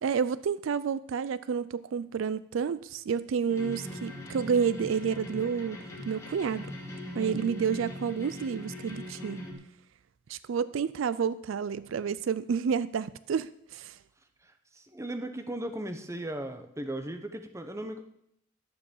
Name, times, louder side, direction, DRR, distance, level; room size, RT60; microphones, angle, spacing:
voice 1, 0.0-5.8 6.1-6.7 7.2-9.5 10.3-14.0, right 6 dB, 70° right, 17 dB, 0.4 m, -30 dB
sound 1, 3.5-9.5, left 1 dB, 15° left, 2.7 m, -41 dB
voice 2, 14.4-18.0, right 1 dB, 15° right, 7 dB, 0.9 m, -37 dB
11.0 x 7.3 x 7.1 m, 0.75 s
head